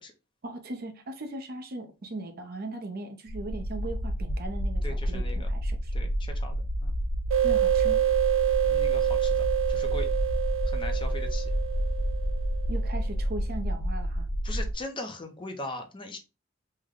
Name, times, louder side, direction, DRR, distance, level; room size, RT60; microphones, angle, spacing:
voice 1, 0.4-5.9 7.4-8.0 12.7-14.3, right 2 dB, 50° right, 0.6 m, -38 dB
sound 1, 3.3-14.8, equal, 85° left, 0.8 m, -30 dB
voice 2, 4.8-5.5 5.9-6.9 8.6-10.2 10.7-11.5 14.4-16.2, left 2 dB, 25° left, 0.6 m, -40 dB
sound 2, 7.3-12.6, right 12 dB, 85° right, 0.8 m, -27 dB
3.3 x 2.1 x 3.6 m
head